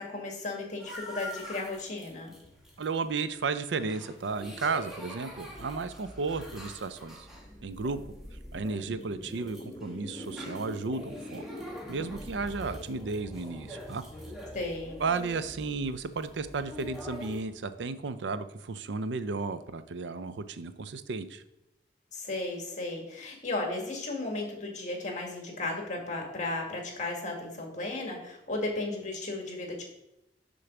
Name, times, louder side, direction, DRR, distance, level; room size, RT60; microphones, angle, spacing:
voice 1, 0.0-2.3 14.5-15.0 22.1-29.8, left 2 dB, 45° left, 1 dB, 1.7 m, -35 dB
sound 1, 0.8-17.4, left 1 dB, 5° right, 1.4 m, -46 dB
voice 2, 2.8-7.3 7.6-8.0 8.5-11.4 11.9-14.0 15.0-21.4, right 4 dB, 85° right, 12 dB, 0.5 m, -33 dB
sound 2, 5.3-18.0, left 1 dB, 15° left, 1.0 m, -46 dB
6.5 x 3.9 x 5.9 m, 0.89 s
head